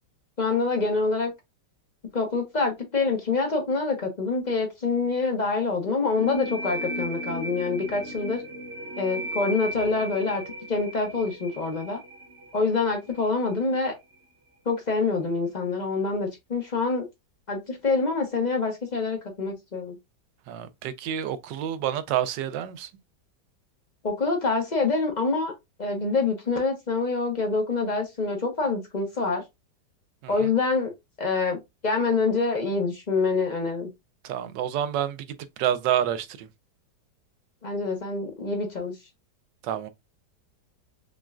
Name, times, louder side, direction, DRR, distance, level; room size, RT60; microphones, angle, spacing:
voice 1, 0.4-1.3 2.1-8.4 9.0-10.4 10.7-12.0 12.5-13.9 14.6-17.0 17.5-20.0 24.0-25.5 25.8-29.4 30.3-30.9 31.2-33.9 37.6-38.9, left 4 dB, 35° left, 0.8 m, -26 dB
sound 1, 6.2-13.6, equal, 50° right, 0.9 m, -36 dB
voice 2, 20.5-22.9 30.2-30.5 34.2-35.2 35.6-36.5 39.6-39.9, right 10 dB, 85° right, 1.3 m, -28 dB
6.0 x 2.3 x 2.4 m
omnidirectional pair, 1.9 m